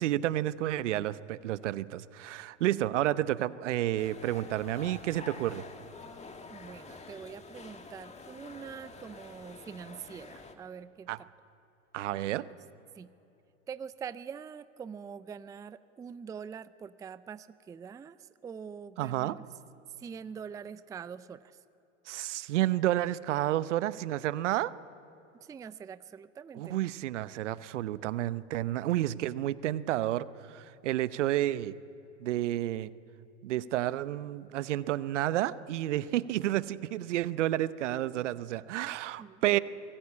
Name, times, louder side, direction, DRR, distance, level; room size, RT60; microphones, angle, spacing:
voice 1, 0.0-5.6 11.1-11.2 11.9-12.4 19.0-19.3 22.1-24.7 26.5-31.7 32.2-32.9 33.4-39.6, right 14 dB, 70° right, 17 dB, 0.8 m, -30 dB
sound 1, 4.0-10.6, left 4 dB, 15° left, 1.9 m, -48 dB
voice 2, 6.0-11.3 12.1-12.6 13.0-13.1 13.7-19.4 20.0-21.6 25.4-26.9 39.2-39.4, right 7 dB, 10° right, 16 dB, 0.4 m, -44 dB
24.5 x 16.5 x 8.6 m, 2.9 s
hypercardioid pair, 90°, 38 cm